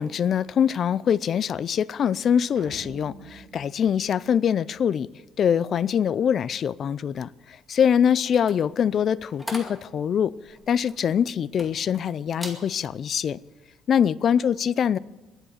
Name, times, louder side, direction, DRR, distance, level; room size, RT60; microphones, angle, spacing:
voice 1, 0.0-5.1 5.4-7.3 7.7-10.3 10.7-13.4 13.9-15.0, left 8 dB, 50° left, 0.4 m, -23 dB
sound 1, 2.6-5.0, right 4 dB, 60° right, 4.2 m, -46 dB
sound 2, 8.2-12.0 12.3-12.7 13.1-13.4, equal, 5° left, 2.2 m, -40 dB
22.0 x 8.1 x 7.3 m
cardioid pair, 115°, 0 cm